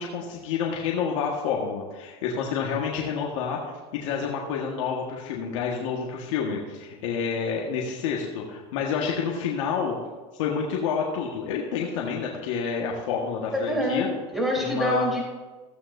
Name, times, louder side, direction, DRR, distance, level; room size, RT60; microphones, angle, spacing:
voice 1, 0.0-3.7 4.0-9.9 10.3-14.1 14.6-15.1, left 6 dB, 80° left, -2 dB, 1.6 m, -29 dB
voice 2, 13.5-15.2, equal, ahead, -3 dB, 3.8 m, -26 dB
15.5 x 8.6 x 2.7 m, 1.3 s
supercardioid pair, 120°, 16 cm